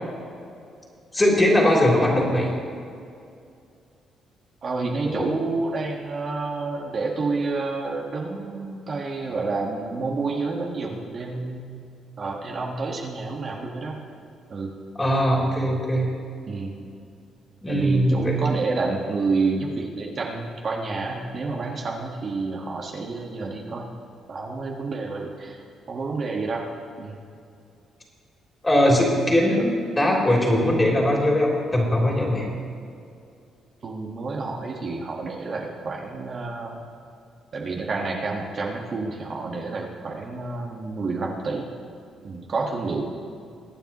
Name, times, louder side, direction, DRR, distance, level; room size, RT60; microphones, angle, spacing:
voice 1, 1.1-2.5 5.0-5.3 15.0-16.1 17.6-18.3 28.6-29.6 30.0-32.5, left 1 dB, 20° left, -3 dB, 3.3 m, -20 dB
voice 2, 4.6-11.8 12.2-14.0 14.5-14.7 16.5-16.8 17.7-23.9 24.3-26.6 27.0-27.2 29.4-29.7 33.8-36.8 37.5-41.7 42.2-43.1, right 3 dB, 50° right, -1 dB, 1.6 m, -29 dB
23.0 x 9.1 x 3.1 m, 2.4 s
cardioid pair, 90°, 0 cm